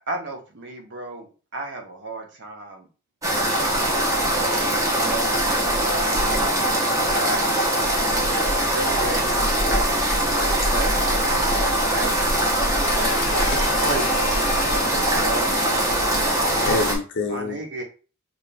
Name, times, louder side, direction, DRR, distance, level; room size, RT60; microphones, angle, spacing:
voice 1, 0.1-2.9 4.5-6.8 7.1-7.5 7.7-8.0 8.5-9.9 10.3-12.3 13.3-13.4 13.8-14.8 15.2-15.9 17.3-17.8, right 2 dB, 55° right, 1.0 m, -33 dB
sound 1, 3.2-17.0, right 1 dB, 15° right, 0.8 m, -22 dB
voice 2, 12.8-14.9 16.7-17.6, left 3 dB, 55° left, 0.6 m, -29 dB
voice 3, 14.9-16.5 17.8-17.9, right 3 dB, 85° right, 1.0 m, -39 dB
4.9 x 2.7 x 2.3 m
head